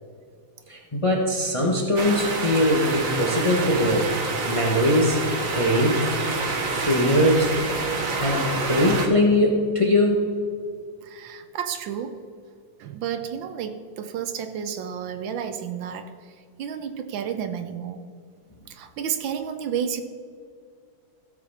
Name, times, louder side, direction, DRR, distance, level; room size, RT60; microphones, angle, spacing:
voice 1, 0.7-4.1 4.5-6.0 6.7-7.6 8.2-10.2, left 1 dB, 20° left, 0 dB, 0.9 m, -21 dB
sound 1, 2.0-9.1, right 3 dB, 50° right, 1.3 m, -28 dB
voice 2, 11.0-12.2 12.8-18.0 18.7-20.0, right 8 dB, 75° right, 8 dB, 1.4 m, -31 dB
15.5 x 7.1 x 4.3 m, 2.2 s
omnidirectional pair, 2.2 m